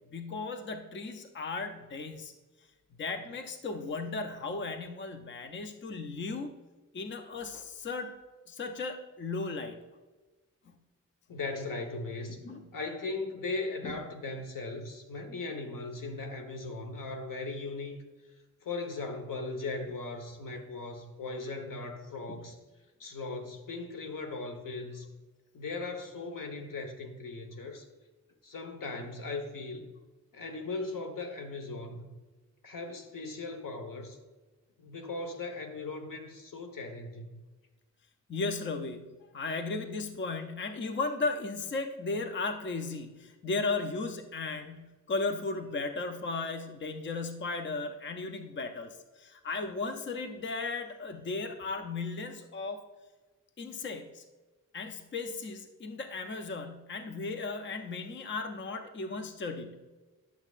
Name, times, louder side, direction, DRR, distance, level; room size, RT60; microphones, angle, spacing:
voice 1, 0.0-2.3 3.0-6.6 6.9-8.1 8.5-9.8 12.4-12.6 13.8-13.9 20.5-20.7 22.3-22.4 38.3-52.8 53.6-54.2 54.7-59.8, left 3 dB, 35° left, 6 dB, 0.6 m, -36 dB
voice 2, 11.3-12.4 12.7-18.0 18.6-22.6 23.0-25.1 25.5-27.8 28.4-29.9 30.3-32.2 32.6-34.2 34.8-37.4, left 3 dB, 90° left, 4 dB, 1.3 m, -38 dB
10.5 x 7.0 x 2.5 m, 1.2 s
wide cardioid pair, 170°, 32 cm